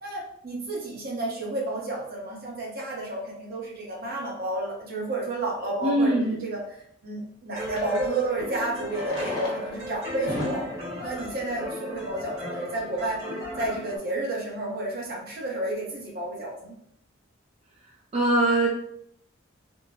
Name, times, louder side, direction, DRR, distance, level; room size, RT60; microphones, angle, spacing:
voice 1, 0.0-10.7 11.0-13.2 13.6-16.7, right 2 dB, 50° right, -2 dB, 0.9 m, -31 dB
Fireworks, 5.3-5.4 7.6-7.7 8.8-12.5 13.3-13.4 13.6-13.7 13.9-14.0 14.5-14.7, equal, 50° left, 1.3 m, -37 dB
voice 2, 5.8-6.4 18.1-18.7, right 1 dB, 30° right, -2 dB, 0.4 m, -22 dB
sound 1, 7.6-14.0, left 1 dB, 75° right, 1.3 m, -36 dB
3.6 x 2.1 x 2.7 m, 0.70 s
head